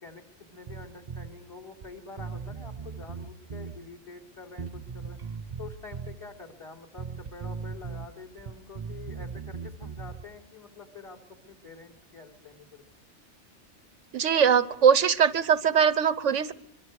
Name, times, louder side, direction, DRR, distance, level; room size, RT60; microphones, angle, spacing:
voice 1, 0.0-5.2 5.6-12.8, left 4 dB, 25° left, 5 dB, 4.0 m, -47 dB
Bass guitar, 0.7-1.3 1.8-1.9 2.2-3.8 4.6-6.2 7.0-8.1 8.4-10.3, right 5 dB, 40° right, 0.9 m, -38 dB
voice 2, 14.1-16.5, right 7 dB, 85° right, 14 dB, 1.3 m, -21 dB
24.0 x 24.0 x 4.8 m, 0.79 s
omnidirectional pair, 1.2 m